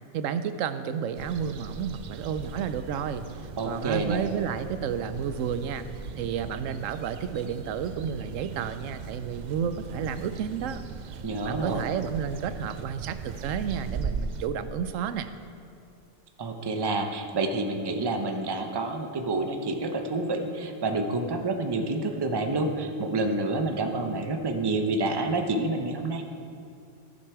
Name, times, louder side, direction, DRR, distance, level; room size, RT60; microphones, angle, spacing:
voice 1, 0.1-5.9 6.2-10.8 11.4-15.3, right 7 dB, 90° right, 11 dB, 1.0 m, -31 dB
sound 1, 1.1-14.5, right 5 dB, 70° right, 0.4 m, -39 dB
voice 2, 3.6-4.2 11.2-11.9 16.4-26.2, right 2 dB, 25° right, 4 dB, 0.6 m, -28 dB
14.5 x 6.8 x 4.7 m, 2.5 s
omnidirectional pair, 1.3 m